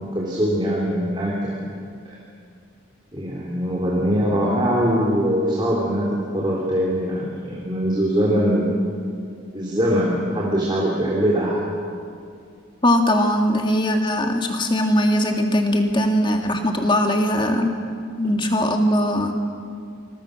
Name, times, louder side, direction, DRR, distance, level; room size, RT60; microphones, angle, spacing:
voice 1, 0.0-1.6 2.0-2.2 3.1-8.7 9.5-11.6, equal, 25° right, -4 dB, 3.2 m, -22 dB
voice 2, 12.8-17.7 18.2-19.3, equal, 25° left, 3 dB, 2.1 m, -20 dB
26.0 x 21.5 x 6.5 m, 2.3 s
head